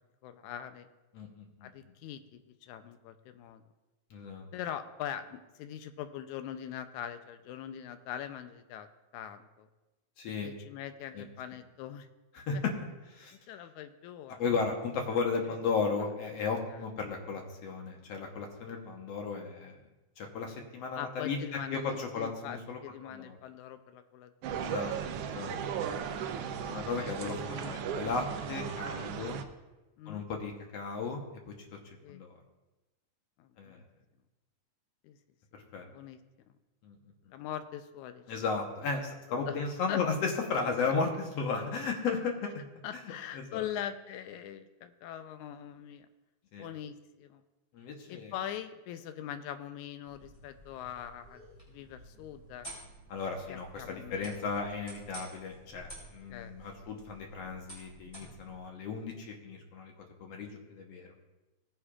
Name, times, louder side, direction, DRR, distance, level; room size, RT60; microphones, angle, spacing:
voice 1, 0.2-0.9 1.6-3.6 4.5-8.9 9.1-9.7 10.4-12.1 12.5-12.6 13.3-14.4 16.7-16.8 21.0-24.7 25.9-26.5 27.4-28.0 30.0-30.3 32.0-32.2 33.4-33.8 35.0-35.2 35.9-36.2 37.3-38.2 39.3-39.6 39.9-40.0 42.8-46.1 46.6-47.4 48.1-51.4 51.7-52.7 53.5-54.3 56.3-56.5 56.8-56.9, left 10 dB, 85° left, 9 dB, 2.0 m, -42 dB
voice 2, 1.1-1.7 4.1-4.5 10.2-10.5 11.1-11.3 12.4-12.7 13.1-13.4 14.4-19.8 20.2-23.4 24.6-24.9 25.3-25.5 26.7-29.4 30.1-32.3 33.6-33.8 35.7-35.9 36.8-37.0 38.3-42.7 43.0-43.6 46.5-46.7 47.7-48.3 53.1-59.9 60.2-61.1, left 4 dB, 65° left, 2 dB, 2.0 m, -35 dB
sound 1, 24.4-29.4, right 7 dB, 85° right, 1.3 m, -36 dB
sound 2, 50.1-58.6, right 1 dB, 15° left, 3.8 m, -51 dB
17.5 x 9.8 x 2.4 m, 1.1 s
omnidirectional pair, 3.5 m